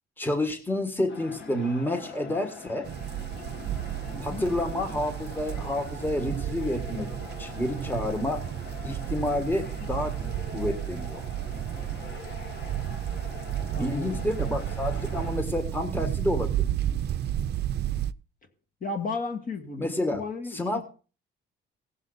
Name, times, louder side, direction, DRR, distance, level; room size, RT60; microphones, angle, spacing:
voice 1, 0.2-2.9 4.2-7.1 7.4-8.4 8.8-10.1 10.5-11.2 13.8-16.7 19.8-20.2 20.5-20.8, left 1 dB, 10° left, 7 dB, 1.5 m, -29 dB
sound 1, 1.1-15.4, left 4 dB, 70° left, 2.6 m, -43 dB
sound 2, 2.8-18.1, right 11 dB, 55° right, 0.5 m, -32 dB
voice 2, 4.1-4.5 13.7-14.2 18.8-20.8, left 3 dB, 45° left, 5 dB, 1.9 m, -34 dB
17.0 x 7.5 x 4.0 m, 0.37 s
cardioid pair, 90°, 20 cm